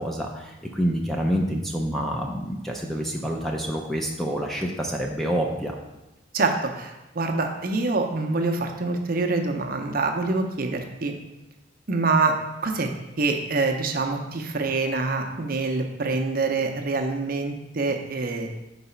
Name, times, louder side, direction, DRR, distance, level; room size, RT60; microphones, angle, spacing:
voice 1, 0.0-5.7, equal, ahead, 0 dB, 0.4 m, -27 dB
voice 2, 6.3-11.1 11.9-12.3 12.6-12.9 13.2-18.5, right 3 dB, 50° right, 3 dB, 0.6 m, -25 dB
4.8 x 4.0 x 5.5 m, 1.0 s
head